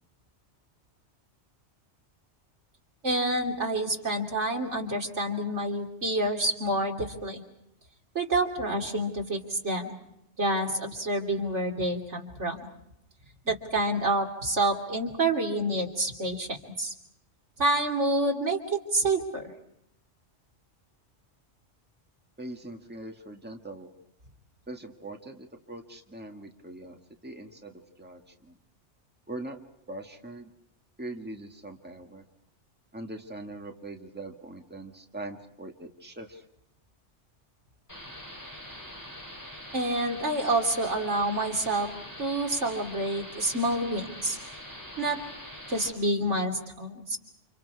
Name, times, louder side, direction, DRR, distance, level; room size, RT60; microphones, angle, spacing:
voice 1, 3.0-7.4 8.1-10.0 10.4-12.7 13.4-16.9 17.6-19.5 39.7-41.9 42.2-44.4 45.0-45.2 45.7-47.2, right 1 dB, 80° right, 1 dB, 3.3 m, -28 dB
voice 2, 22.4-23.9 24.7-27.0 27.2-28.6 29.3-29.6 29.9-30.5 31.0-32.2 32.9-36.4, right 2 dB, 10° right, 2 dB, 1.8 m, -42 dB
sound 1, 37.9-45.9, left 1 dB, 15° left, 6.4 m, -43 dB
29.5 x 28.0 x 4.8 m, 0.79 s
omnidirectional pair, 1.2 m